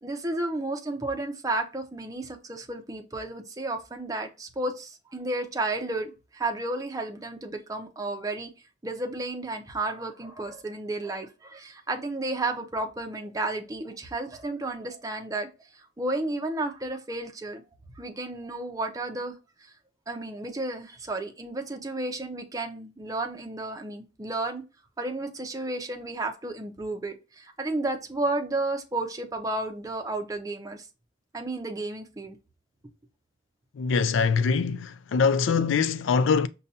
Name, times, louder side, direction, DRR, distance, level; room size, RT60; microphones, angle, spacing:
voice 1, 0.0-8.5 8.8-15.5 16.0-17.6 18.0-19.4 20.1-24.6 25.0-30.8 31.3-32.4, right 2 dB, 20° right, 0.6 m, -32 dB
voice 2, 33.8-36.5, left 5 dB, 85° left, 0.4 m, -23 dB
5.3 x 2.3 x 2.7 m
head